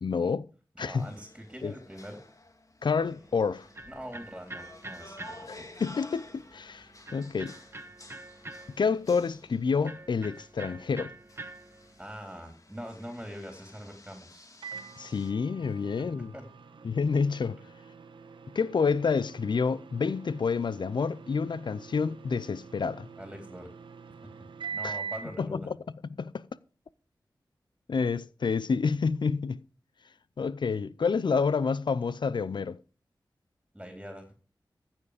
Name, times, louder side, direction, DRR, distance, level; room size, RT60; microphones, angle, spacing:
voice 1, 0.0-0.4 0.8-1.1 1.6-1.7 2.8-3.7 5.5-6.9 7.1-7.5 8.8-11.1 15.0-16.3 16.8-17.6 18.5-23.1 24.8-24.9 25.4-25.7 26.2-26.4 27.9-29.6 30.4-32.8, left 5 dB, 70° left, 0.6 m, -28 dB
voice 2, 0.8-2.2 3.8-5.8 12.0-14.5 15.7-16.5 23.2-23.7 24.4-24.5 24.7-25.7 33.7-34.3, equal, 10° right, 3.7 m, -43 dB
sound 1, 0.9-15.3, left 2 dB, 45° left, 2.0 m, -53 dB
Electric guitar, 3.0-12.1, right 2 dB, 30° right, 1.2 m, -47 dB
Microwave oven, 14.6-25.4, right 6 dB, 85° right, 1.3 m, -44 dB
15.0 x 7.3 x 5.0 m
cardioid pair, 45°, 8 cm